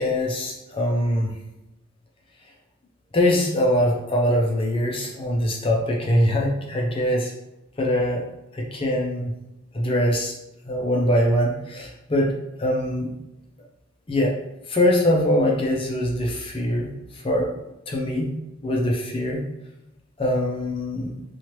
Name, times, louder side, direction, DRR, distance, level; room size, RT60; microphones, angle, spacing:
voice 1, 0.0-1.3 3.1-7.3 7.8-8.3 8.5-9.3 9.7-10.3 10.7-12.3 12.6-13.1 14.1-14.4 14.7-17.5 17.9-18.3 18.6-19.4 20.2-21.1, left 1 dB, 25° left, -1 dB, 0.4 m, -22 dB
3.0 x 2.4 x 2.9 m, 0.92 s
head